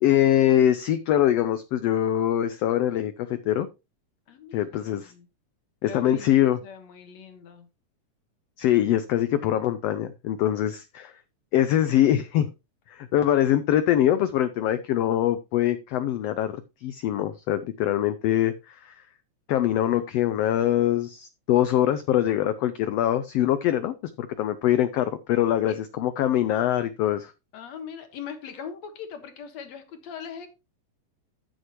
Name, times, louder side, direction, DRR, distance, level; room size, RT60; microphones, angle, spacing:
voice 1, 0.0-3.7 4.5-5.1 5.8-6.6 8.6-11.1 11.5-12.5 12.9-18.9 19.5-27.3, left 11 dB, 80° left, 1.4 m, -23 dB
voice 2, 4.3-5.3 5.8-6.3 6.6-7.7 25.7-25.8 27.5-30.5, left 7 dB, 65° left, 2.4 m, -40 dB
14.0 x 6.6 x 3.0 m
omnidirectional pair, 3.6 m